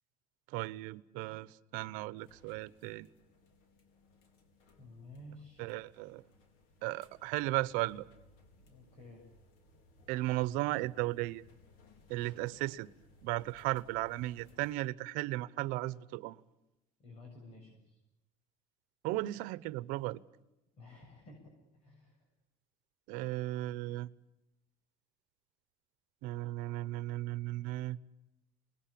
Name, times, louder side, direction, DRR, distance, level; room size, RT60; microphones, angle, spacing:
voice 1, 0.5-3.1 5.6-6.2 6.8-8.1 10.1-11.4 12.1-12.9 13.2-16.4 19.0-20.2 23.1-24.1 26.2-28.0, right 18 dB, 85° right, 0.9 m, -35 dB
sound 1, 2.2-14.7, left 1 dB, 85° left, 4.5 m, -63 dB
voice 2, 4.8-5.7 8.6-9.2 12.2-12.5 17.0-18.0 20.8-21.4 21.7-22.3, left 1 dB, 50° left, 7.9 m, -53 dB
27.0 x 20.5 x 8.6 m
cardioid pair, 145°, 14 cm